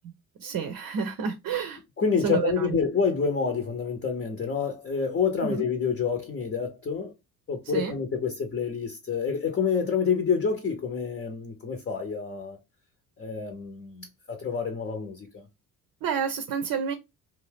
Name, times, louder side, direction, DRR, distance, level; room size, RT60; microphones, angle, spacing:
voice 1, 0.4-1.8 2.2-2.8 5.4-5.7 7.7-7.9 16.0-16.9, right 7 dB, 50° right, 0.7 m, -29 dB
voice 2, 2.0-7.1 7.5-12.6 13.2-15.5, left 6 dB, 25° left, 0.8 m, -28 dB
2.7 x 2.3 x 3.3 m
hypercardioid pair, 60°, 43 cm